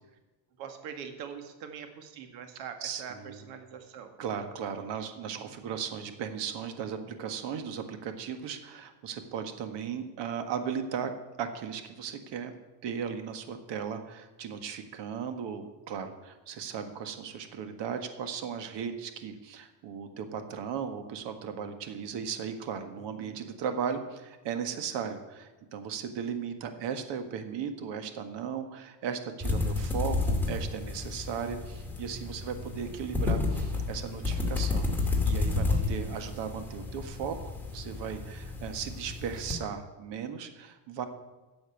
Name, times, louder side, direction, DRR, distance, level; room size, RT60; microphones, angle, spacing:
voice 1, 0.6-3.1 3.4-4.1 5.4-5.7 23.2-23.5 34.4-34.8 35.6-36.2, right 7 dB, 85° right, 6 dB, 1.9 m, -44 dB
voice 2, 2.8-3.5 4.2-11.1 11.4-12.5 12.8-37.4 37.7-41.1, right 7 dB, 60° right, 7 dB, 1.7 m, -36 dB
sound 1, 29.4-39.5, left 3 dB, 5° left, 2.3 m, -31 dB
10.5 x 7.1 x 8.3 m, 1.1 s
supercardioid pair, 110°, 49 cm